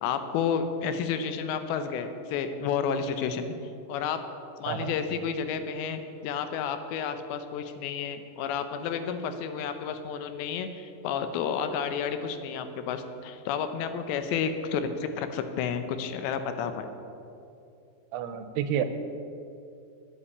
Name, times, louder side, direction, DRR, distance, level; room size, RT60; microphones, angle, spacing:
voice 1, 0.0-3.5 3.9-4.2 4.6-16.9, left 7 dB, 90° left, 9 dB, 3.1 m, -31 dB
voice 2, 18.1-18.8, right 9 dB, 80° right, 9 dB, 2.6 m, -29 dB
9.7 x 8.6 x 8.5 m, 2.7 s
omnidirectional pair, 4.9 m